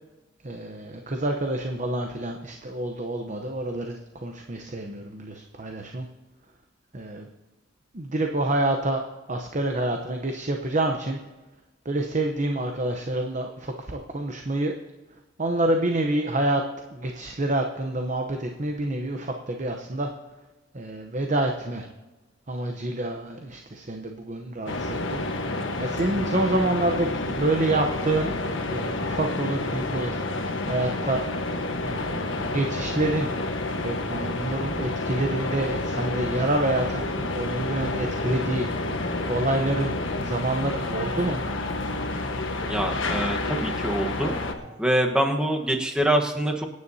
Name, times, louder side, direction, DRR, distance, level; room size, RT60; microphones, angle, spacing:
voice 1, 0.4-6.1 6.9-7.3 7.9-9.0 9.3-11.2 11.8-14.7 15.4-16.6 16.9-20.1 20.7-21.9 22.5-25.2 25.5-28.3 28.7-30.2 30.6-31.2 31.8-33.3 33.8-38.7 38.9-41.4, right 1 dB, 40° right, 3 dB, 0.8 m, -27 dB
sound 1, 24.7-44.5, left 2 dB, 80° left, 1.3 m, -29 dB
voice 2, 42.6-44.4 44.8-46.6, right 1 dB, 5° right, 1 dB, 1.2 m, -25 dB
25.5 x 9.6 x 2.8 m, 1.2 s
head